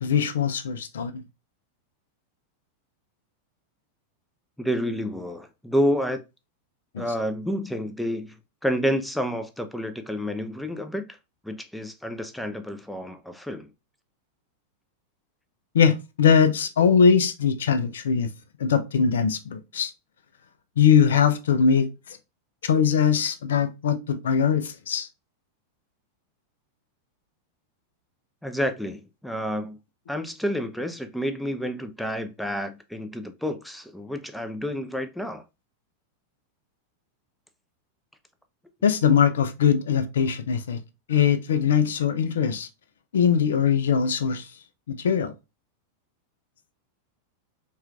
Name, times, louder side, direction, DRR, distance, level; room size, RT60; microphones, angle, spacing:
voice 1, 0.0-1.1 6.9-7.1 15.7-18.3 18.6-19.9 20.8-21.9 22.6-25.1 38.8-40.8 41.1-42.7 43.1-44.5 44.9-45.3, left 7 dB, 65° left, 0.4 m, -21 dB
voice 2, 4.6-6.2 7.0-8.4 8.6-11.0 11.4-13.7 28.4-29.8 30.1-35.4, equal, ahead, 0.4 m, -29 dB
4.3 x 2.3 x 2.4 m
figure-of-eight pair, 90°, 0 cm